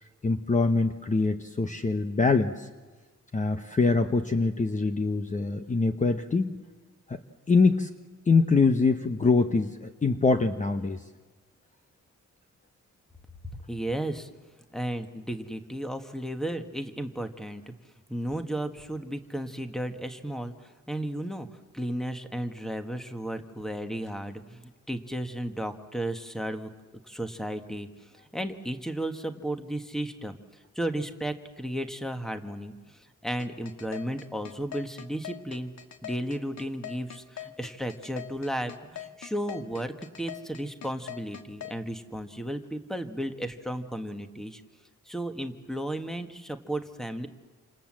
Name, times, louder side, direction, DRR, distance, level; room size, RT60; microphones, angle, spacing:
voice 1, 0.2-2.7 3.3-6.6 7.1-7.2 7.5-7.9 8.3-11.0, left 4 dB, 25° left, 7 dB, 1.0 m, -24 dB
voice 2, 13.4-14.3 14.7-17.7 18.1-21.5 21.7-26.7 27.1-30.4 30.7-35.7 36.0-44.6 45.0-47.3, right 1 dB, ahead, 7 dB, 1.6 m, -34 dB
sound 1, 33.4-41.8, left 10 dB, 70° left, 2.0 m, -41 dB
28.5 x 27.5 x 7.6 m, 1.3 s
wide cardioid pair, 160°, 29 cm